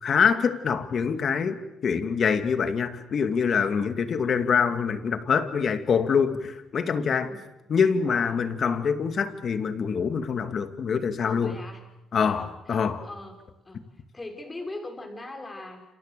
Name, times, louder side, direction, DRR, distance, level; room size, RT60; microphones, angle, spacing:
voice 1, 0.0-1.6 1.8-7.3 7.7-11.6 12.1-13.0, left 6 dB, 55° left, 8 dB, 2.4 m, -25 dB
voice 2, 7.0-7.4 7.9-8.4 11.2-11.8 12.1-15.8, left 2 dB, 20° left, 4 dB, 6.6 m, -41 dB
29.5 x 27.5 x 7.0 m, 0.94 s
cardioid pair, 90°, 0 cm